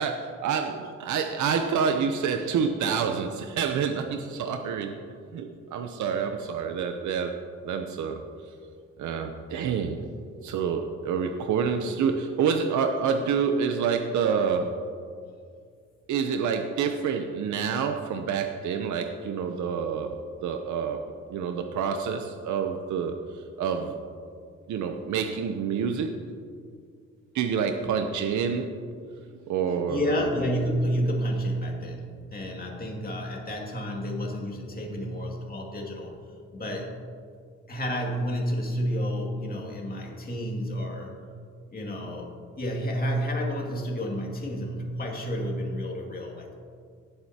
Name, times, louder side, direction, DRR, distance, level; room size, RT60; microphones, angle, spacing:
voice 1, 0.0-5.0 5.3-7.3 7.6-8.2 9.0-10.0 10.4-14.7 16.1-20.2 20.4-21.0 21.3-23.2 23.6-23.9 24.7-26.1 27.3-28.7 29.5-30.2, right 6 dB, 70° right, 5 dB, 0.8 m, -27 dB
voice 2, 29.7-36.2 36.5-37.0 37.7-41.2 41.7-46.5, equal, 30° left, -1 dB, 2.3 m, -30 dB
18.5 x 7.8 x 2.9 m, 2.2 s
cardioid pair, 90°, 30 cm